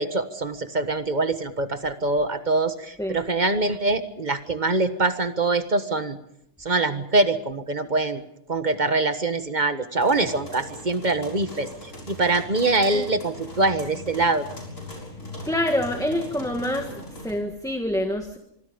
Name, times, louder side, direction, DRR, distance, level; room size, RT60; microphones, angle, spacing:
voice 1, 0.0-6.2 6.6-8.2 8.5-11.7 12.1-14.5, right 2 dB, 35° right, 10 dB, 1.5 m, -24 dB
sound 1, 10.0-17.3, equal, 80° left, 7.1 m, -40 dB
voice 2, 15.5-18.4, left 1 dB, 5° left, 5 dB, 1.5 m, -26 dB
25.0 x 24.5 x 5.2 m, 0.75 s
omnidirectional pair, 1.4 m